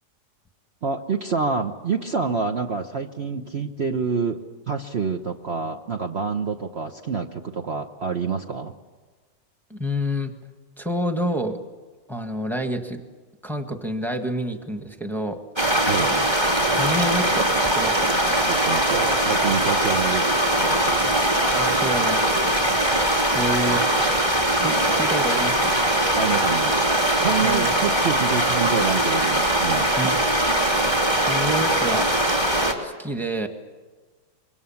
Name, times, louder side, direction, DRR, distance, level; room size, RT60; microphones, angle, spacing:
voice 1, 0.8-4.4 4.7-8.7 15.9-16.1 18.4-20.2 20.5-21.2 26.2-26.9 27.2-29.9, right 5 dB, 45° right, 4 dB, 1.1 m, -27 dB
voice 2, 9.7-10.3 10.8-11.6 12.1-13.0 13.4-15.4 16.1-16.3 16.7-18.1 21.5-22.3 23.3-23.8 24.6-25.7 27.4-27.7 30.0-30.2 31.2-32.1 32.8-33.5, equal, ahead, 5 dB, 1.5 m, -28 dB
sound 1, 15.6-32.7, right 1 dB, 15° right, 2.9 m, -21 dB
26.0 x 23.5 x 7.2 m, 1.4 s
omnidirectional pair, 1.9 m